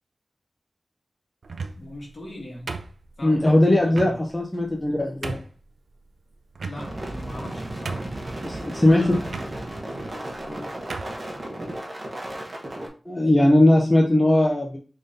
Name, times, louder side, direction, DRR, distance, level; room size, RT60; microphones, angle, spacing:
sound 1, 1.4-2.0 2.7-3.3 3.9-4.2 4.7-4.8 5.2-5.6 6.6-7.1 7.5-7.6 7.9-8.3 9.3-9.5 10.3-10.5 10.9-11.2, right 4 dB, 80° right, 0.4 m, -34 dB
voice 1, 1.8-2.7 3.2-4.2 6.7-8.1 8.8-9.3 10.4-10.8, left 1 dB, 50° left, -2 dB, 1.8 m, -39 dB
voice 2, 3.2-5.4 8.4-9.2 13.1-14.8, left 1 dB, 15° left, 0 dB, 0.6 m, -19 dB
sound 2, 6.7-12.9, right 1 dB, 35° right, 1.1 m, -34 dB
5.1 x 3.6 x 2.7 m, 0.39 s
wide cardioid pair, 105°, 0 cm